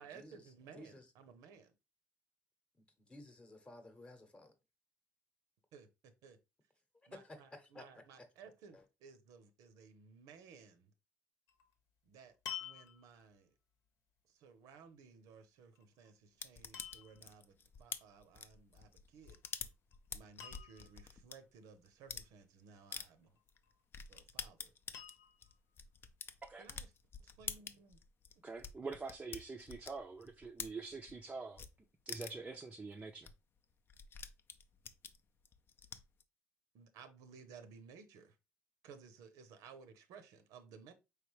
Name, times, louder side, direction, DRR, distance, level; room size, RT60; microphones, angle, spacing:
voice 1, 0.0-1.7 5.7-6.4 7.1-10.9 12.0-12.3 12.6-13.5 14.2-19.7 20.1-23.4 24.1-24.7 26.6-26.9 27.2-28.0 36.7-38.4 38.8-40.9, right 6 dB, 80° right, 0.7 m, -58 dB
voice 2, 0.7-1.1 3.0-4.5 7.0-7.8 8.7-8.8, left 1 dB, 20° left, 0.9 m, -54 dB
sound 1, 11.5-11.7 12.5-13.3 15.8-16.1 16.7-17.3 19.2-19.6 19.9-20.0 20.4-21.1 23.4-24.0 24.9-25.6 26.3-26.4, left 8 dB, 75° left, 1.0 m, -49 dB
sound 2, 16.4-21.3 21.9-22.3 22.9-23.0 23.5-23.6 23.9-31.2 31.6-31.7 32.1-32.5 32.9-33.0 33.2-33.3 33.6-36.2, left 6 dB, 40° left, 0.5 m, -47 dB
voice 3, 28.4-31.7 32.1-33.3, right 4 dB, 20° right, 0.5 m, -45 dB
4.7 x 3.3 x 3.1 m
cardioid pair, 115°, 6 cm